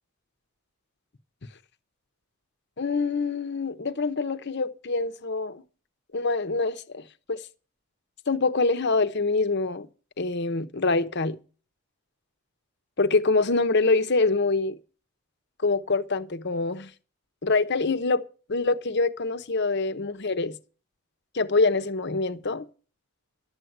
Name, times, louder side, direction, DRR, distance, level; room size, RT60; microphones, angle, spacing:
voice 1, 2.8-5.6 6.1-7.4 8.3-9.9 10.2-11.4 13.0-14.8 15.6-16.9 17.4-18.2 18.5-20.5 21.3-22.6, left 3 dB, 50° left, 0.9 m, -25 dB
12.0 x 8.1 x 7.8 m
head